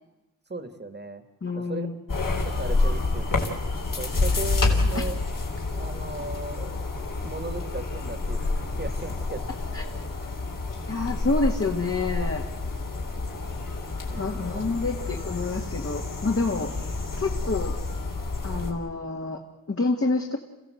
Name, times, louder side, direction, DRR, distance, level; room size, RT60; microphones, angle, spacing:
voice 1, 0.5-1.2 1.5-1.9 2.3-3.5 4.0-5.2 5.7-9.4 14.1-14.7, right 2 dB, 30° right, 10 dB, 1.9 m, -37 dB
voice 2, 1.4-1.9 4.9-5.0 9.7-9.8 10.9-12.5 14.2-16.7 17.2-17.7 18.4-19.4 19.7-20.4, left 3 dB, 40° left, 2 dB, 2.0 m, -27 dB
sound 1, 2.1-18.7, left 3 dB, 70° left, 3.7 m, -29 dB
29.0 x 15.5 x 7.8 m, 1.0 s
wide cardioid pair, 80°, 34 cm